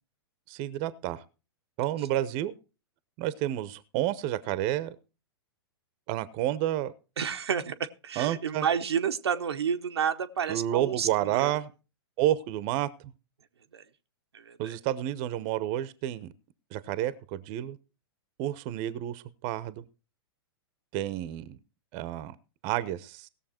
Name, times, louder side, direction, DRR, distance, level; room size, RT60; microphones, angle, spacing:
voice 1, 0.5-1.2 1.8-2.5 3.2-5.0 6.1-6.9 8.2-8.7 10.5-11.7 12.2-12.9 14.6-16.3 16.7-17.8 18.4-19.8 20.9-21.6 21.9-22.3 22.6-23.3, right 13 dB, 40° right, 0.9 m, -30 dB
voice 2, 7.2-7.8 8.0-11.1 11.3-11.5 13.7-13.8 14.3-14.7, right 7 dB, 80° right, 0.9 m, -30 dB
17.0 x 7.1 x 4.4 m
hypercardioid pair, 110°, 14 cm